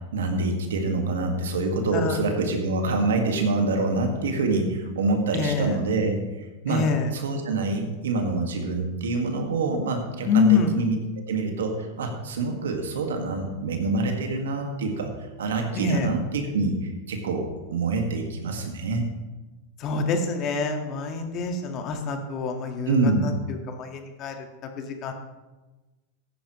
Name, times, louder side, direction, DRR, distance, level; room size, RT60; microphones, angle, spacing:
voice 1, 0.1-11.0 11.3-15.1 15.4-19.0 22.9-23.3, right 3 dB, 85° right, 4 dB, 1.8 m, -26 dB
voice 2, 5.3-5.8 6.7-7.1 10.2-10.8 15.7-16.1 19.8-24.3 24.8-25.1, left 5 dB, 45° left, 4 dB, 1.7 m, -26 dB
14.5 x 10.0 x 3.1 m, 1.2 s
hypercardioid pair, 110°, 0 cm